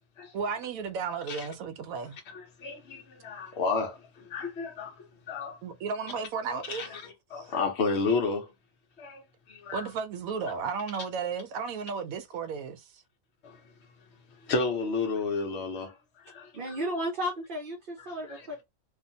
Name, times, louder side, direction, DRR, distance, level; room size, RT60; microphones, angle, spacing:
voice 1, 0.3-2.2 5.6-6.9 7.4-7.5 9.7-12.8, right 5 dB, 70° right, 1.0 m, -34 dB
voice 2, 2.3-5.6 6.6-8.5 9.0-9.2 9.5-9.9 13.4-13.6 14.4-16.0 16.2-16.8 18.0-18.5, left 4 dB, 55° left, 1.0 m, -32 dB
voice 3, 16.5-18.7, equal, 45° right, 0.7 m, -34 dB
2.7 x 2.4 x 2.6 m
omnidirectional pair, 1.6 m